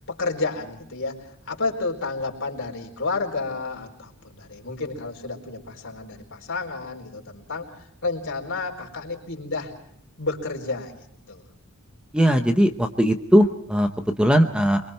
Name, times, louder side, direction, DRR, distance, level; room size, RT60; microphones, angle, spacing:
voice 1, 0.1-9.7 10.2-11.5, left 3 dB, 55° left, 1 dB, 4.5 m, -31 dB
voice 2, 12.1-13.9 14.2-14.8, equal, 5° right, 6 dB, 0.9 m, -19 dB
28.0 x 22.5 x 4.4 m, 0.71 s
head